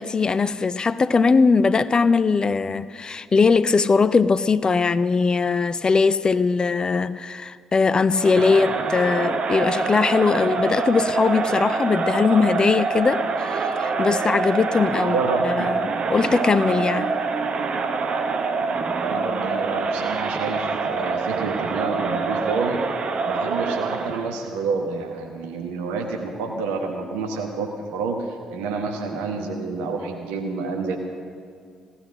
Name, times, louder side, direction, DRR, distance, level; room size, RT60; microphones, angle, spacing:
voice 1, 0.0-15.2 15.5-17.1, left 4 dB, 30° left, 0.4 m, -20 dB
Crowd, 8.1-24.3, right 4 dB, 45° right, 1.0 m, -25 dB
voice 2, 15.0-15.7 19.0-22.8 23.2-31.0, right 4 dB, 65° right, 1.1 m, -28 dB
16.5 x 11.5 x 6.3 m
figure-of-eight pair, 45°, 3 cm